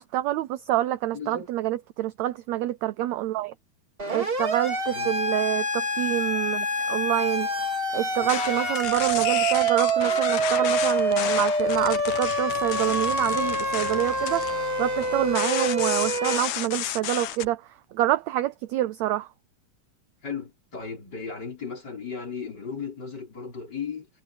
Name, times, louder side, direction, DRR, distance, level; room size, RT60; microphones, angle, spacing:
voice 1, 0.0-3.5 4.1-7.5 7.9-17.6 17.9-19.3, right 14 dB, 80° right, 1.6 m, -27 dB
voice 2, 1.1-1.5 4.9-5.2 20.2-24.1, left 6 dB, 30° left, 5.1 m, -36 dB
Siren, 4.0-16.4, right 2 dB, 20° right, 2.3 m, -26 dB
sound 1, 8.2-17.5, left 12 dB, 75° left, 2.7 m, -32 dB
omnidirectional pair, 3.8 m